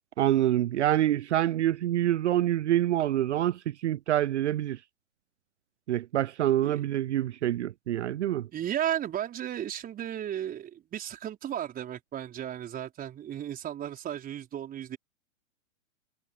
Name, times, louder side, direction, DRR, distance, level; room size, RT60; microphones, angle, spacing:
voice 1, 0.2-4.8 5.9-8.5, right 12 dB, 60° right, 0.6 m, -26 dB
voice 2, 8.5-15.0, right 10 dB, 20° right, 5.2 m, -34 dB
figure-of-eight pair, 115°, 39 cm